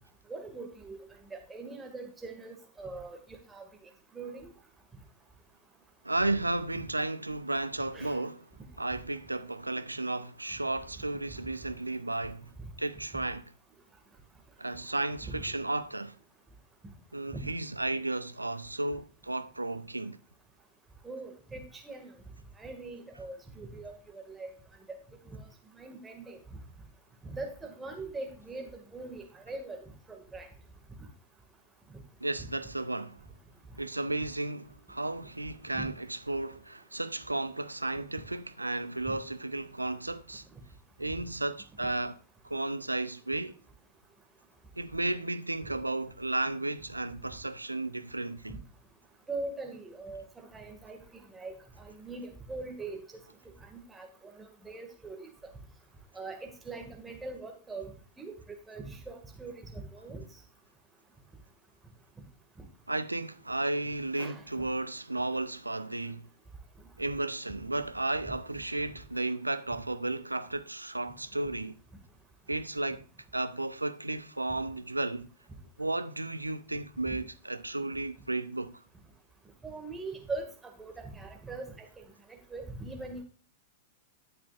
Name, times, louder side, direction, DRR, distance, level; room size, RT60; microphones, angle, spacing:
voice 1, 0.3-1.0 1.3-3.6 4.1-4.5 7.9-8.2 15.3-15.4 17.3-17.5 21.0-22.1 22.6-24.5 24.9-25.0 25.3-25.5 25.7-26.6 27.2-30.5 31.9-32.0 32.4-32.5 35.7-35.9 40.5-40.6 49.3-51.0 51.3-53.0 53.6-55.5 56.1-57.9 58.2-60.2 64.2-64.4 77.1-77.2 79.6-82.0 82.3-83.2, right 3 dB, 10° right, 1.9 m, -42 dB
voice 2, 6.0-8.5 8.8-12.5 12.8-13.4 14.6-16.2 17.1-20.2 32.2-33.2 33.8-40.4 41.0-42.2 42.4-43.6 44.8-48.6 62.9-66.3 67.0-71.8 72.5-73.0 73.3-75.3 75.8-78.8, right 2 dB, 85° right, 0.5 m, -33 dB
12.0 x 8.6 x 2.5 m
figure-of-eight pair, 95°, 0 cm